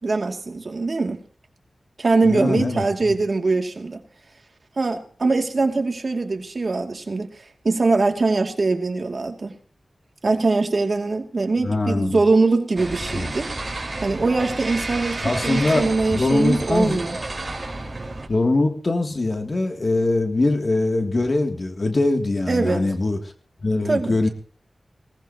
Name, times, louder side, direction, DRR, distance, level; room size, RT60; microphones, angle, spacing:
voice 1, 0.0-1.2 2.0-4.0 4.8-7.3 7.6-9.6 10.2-13.5 14.0-17.2 22.5-22.8 23.9-24.1, right 3 dB, 55° right, 4 dB, 2.5 m, -22 dB
voice 2, 2.2-3.1 11.6-12.2 13.1-13.3 15.2-17.0 18.3-23.2 23.6-24.3, left 2 dB, 45° left, 4 dB, 2.7 m, -22 dB
sound 1, 12.8-18.3, right 2 dB, 40° right, 4.7 m, -31 dB
20.0 x 18.5 x 3.0 m, 0.43 s
wide cardioid pair, 65°, 0 cm